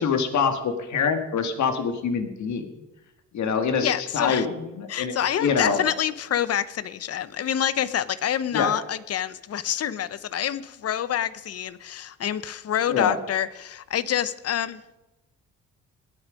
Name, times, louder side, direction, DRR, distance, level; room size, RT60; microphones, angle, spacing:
voice 1, 0.0-2.6 3.3-5.8 8.5-8.7 12.9-13.2, left 6 dB, 70° left, 7 dB, 1.8 m, -25 dB
voice 2, 3.8-4.5 4.9-14.8, left 10 dB, 55° left, 17 dB, 0.7 m, -27 dB
19.0 x 9.0 x 5.1 m, 1.0 s
cardioid pair, 90°, 30 cm